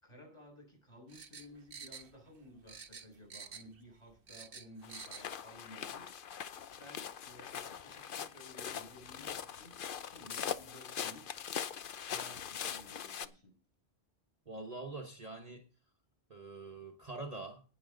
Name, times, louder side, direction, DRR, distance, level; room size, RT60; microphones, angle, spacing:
voice 1, 0.0-6.2 6.8-11.4 12.0-13.6, left 1 dB, 25° left, 6.1 m, -55 dB
sound 1, 1.1-2.4 2.7-3.8 4.1-5.3 5.6-5.7, right 6 dB, 60° right, 1.2 m, -49 dB
sound 2, 4.8-13.3, left 8 dB, 55° left, 0.8 m, -42 dB
voice 2, 14.5-15.7 16.3-17.6, right 3 dB, 35° right, 1.2 m, -44 dB
18.0 x 7.2 x 3.8 m
omnidirectional pair, 1.1 m